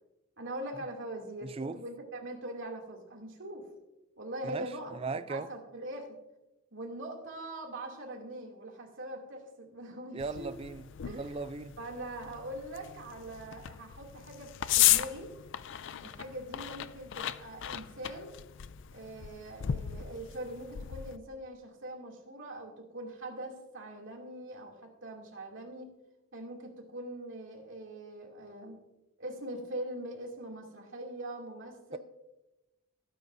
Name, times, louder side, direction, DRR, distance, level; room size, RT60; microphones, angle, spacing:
voice 1, 0.4-3.6 4.2-4.9 5.3-6.1 6.7-10.5 11.0-11.4 11.8-15.3 16.0-18.3 18.9-25.9 26.3-28.8 29.2-32.0, right 1 dB, 55° right, 2.6 m, -42 dB
voice 2, 1.4-1.8 4.4-5.5 10.1-11.7, right 3 dB, 25° right, 0.3 m, -38 dB
sound 1, 10.2-21.2, left 13 dB, 55° left, 0.4 m, -34 dB
20.5 x 9.5 x 2.6 m
head